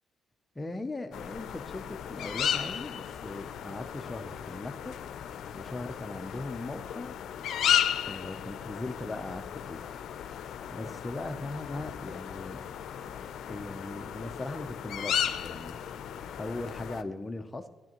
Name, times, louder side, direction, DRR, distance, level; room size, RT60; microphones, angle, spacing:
voice 1, 0.6-5.0 5.5-7.2 8.1-9.9 10.7-12.6 13.5-16.0 16.4-17.7, left 2 dB, 15° left, 5 dB, 0.6 m, -39 dB
sound 1, 1.1-17.0, left 9 dB, 75° left, 0.5 m, -34 dB
15.5 x 10.5 x 3.0 m, 1.2 s
cardioid pair, 90°, 0 cm